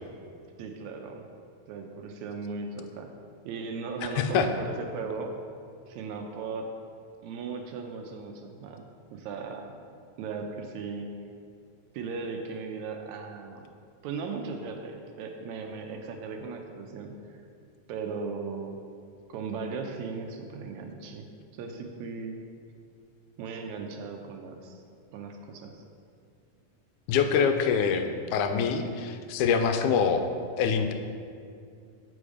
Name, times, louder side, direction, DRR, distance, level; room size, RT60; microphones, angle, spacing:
voice 1, 0.6-1.2 1.7-3.1 3.4-5.3 5.8-6.7 7.2-8.8 9.1-9.7 10.2-11.1 11.9-13.6 14.0-17.1 17.9-18.8 19.3-21.3 21.5-22.4 23.4-24.8 25.1-25.8, right 4 dB, 80° right, 4 dB, 1.8 m, -37 dB
voice 2, 4.2-4.5 27.1-30.3 30.6-30.9, left 6 dB, 80° left, 7 dB, 2.0 m, -25 dB
7.8 x 5.1 x 4.9 m, 2.3 s
omnidirectional pair, 3.5 m